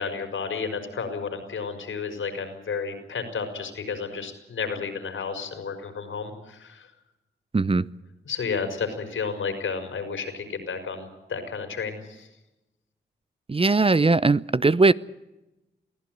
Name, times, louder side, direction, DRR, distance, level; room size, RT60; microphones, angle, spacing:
voice 1, 0.0-6.9 8.2-12.3, left 5 dB, 80° left, 7 dB, 5.0 m, -32 dB
voice 2, 7.5-7.9 13.5-14.9, right 3 dB, 30° right, 17 dB, 0.7 m, -19 dB
23.0 x 15.5 x 9.3 m, 0.98 s
cardioid pair, 50°, 20 cm